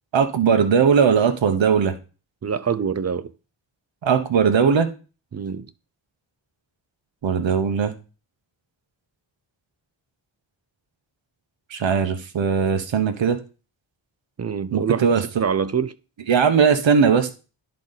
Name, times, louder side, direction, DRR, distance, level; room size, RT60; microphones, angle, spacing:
voice 1, 0.1-1.9 4.0-4.9 7.2-7.9 11.7-13.4 14.7-15.2 16.3-17.3, right 6 dB, 70° right, 1.0 m, -19 dB
voice 2, 2.4-3.3 5.3-5.7 14.4-15.1 15.4-15.9, right 6 dB, 35° right, 0.5 m, -25 dB
10.5 x 3.9 x 4.0 m
wide cardioid pair, 80°, 47 cm